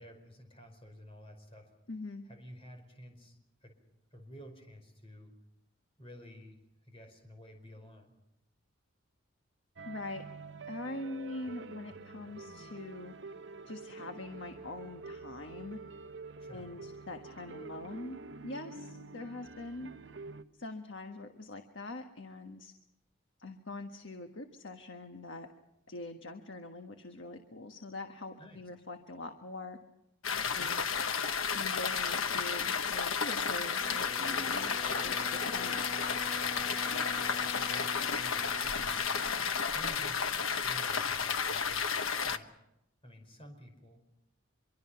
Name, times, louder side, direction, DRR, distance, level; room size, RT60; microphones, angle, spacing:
voice 1, 0.0-1.7 2.2-3.8 4.1-5.3 6.0-8.1 16.4-16.7 28.4-28.6 30.4-30.9 37.6-37.8 38.1-39.0 39.7-41.9 42.2-42.5 43.0-44.0, equal, 25° left, 4 dB, 5.2 m, -52 dB
voice 2, 1.9-2.2 9.8-10.2 10.7-13.1 13.6-15.8 16.5-18.2 18.4-19.9 20.6-22.7 23.4-25.5 25.9-29.8 30.5-30.9 31.5-35.8, left 2 dB, 60° left, 5 dB, 1.5 m, -43 dB
sound 1, 9.8-20.4, right 3 dB, 60° right, 0.9 m, -47 dB
sound 2, 30.2-42.4, left 6 dB, 80° left, 1.2 m, -32 dB
Wind instrument woodwind instrument, 33.8-39.8, left 3 dB, 45° left, 1.2 m, -45 dB
25.5 x 24.0 x 5.8 m, 0.84 s
head